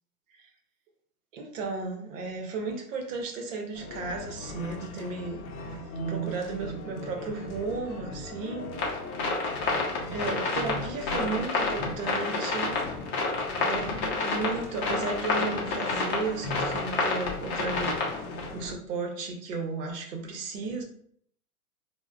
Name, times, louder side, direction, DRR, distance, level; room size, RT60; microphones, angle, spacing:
voice 1, 1.3-8.7 10.1-12.7 13.5-18.0 18.5-20.8, right 4 dB, 55° right, 3 dB, 0.8 m, -34 dB
sound 1, 3.7-18.8, left 1 dB, 65° left, 0.6 m, -39 dB
sound 2, 8.7-18.5, left 3 dB, 25° left, 0.6 m, -29 dB
3.3 x 2.1 x 2.2 m, 0.63 s
hypercardioid pair, 115°, 47 cm